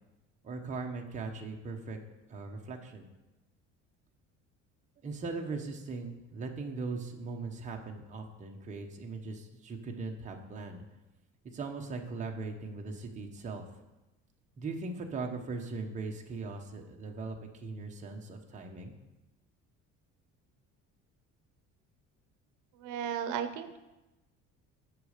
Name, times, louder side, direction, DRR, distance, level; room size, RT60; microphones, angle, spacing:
voice 1, 0.4-2.0 2.3-3.1 5.0-10.8 11.5-13.8 14.6-18.9, right 3 dB, 25° right, 1 dB, 0.9 m, -39 dB
voice 2, 22.8-23.8, right 8 dB, 75° right, 10 dB, 0.7 m, -35 dB
8.1 x 6.4 x 6.6 m, 1.0 s
cardioid pair, 165°, 31 cm